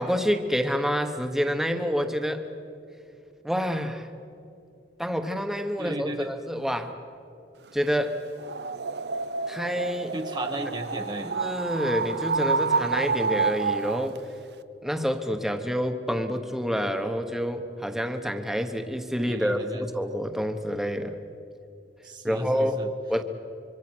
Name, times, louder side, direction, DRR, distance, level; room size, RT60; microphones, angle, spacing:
voice 1, 0.0-2.4 3.4-4.1 5.0-7.0 7.7-8.2 9.5-10.1 11.2-14.2 14.8-21.2 22.2-22.8 23.1-23.2, equal, ahead, 6 dB, 1.2 m, -28 dB
voice 2, 5.8-6.3 10.1-11.3 19.3-19.8 22.0-22.9, right 1 dB, 25° right, 4 dB, 1.0 m, -35 dB
sound 1, 8.4-14.2, right 4 dB, 65° right, 0.6 m, -28 dB
25.5 x 24.5 x 6.3 m, 2.7 s
head